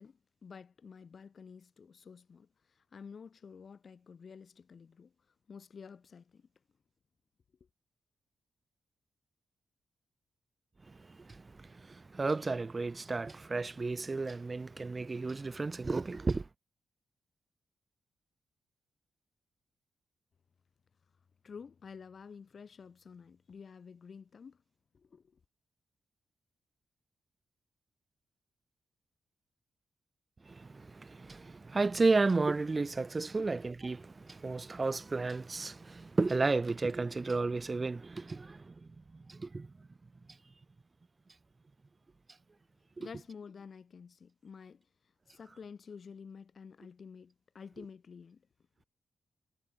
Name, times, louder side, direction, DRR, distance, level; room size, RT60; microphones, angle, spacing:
voice 1, 0.0-5.1 5.5-6.5 21.4-24.6 24.9-25.4 43.0-44.9 45.3-48.4, left 6 dB, 45° left, 5.3 m, -50 dB
voice 2, 11.2-16.4 30.5-38.7 39.1-39.7, right 3 dB, 25° right, 0.4 m, -33 dB
wide cardioid pair, 140°, 0 cm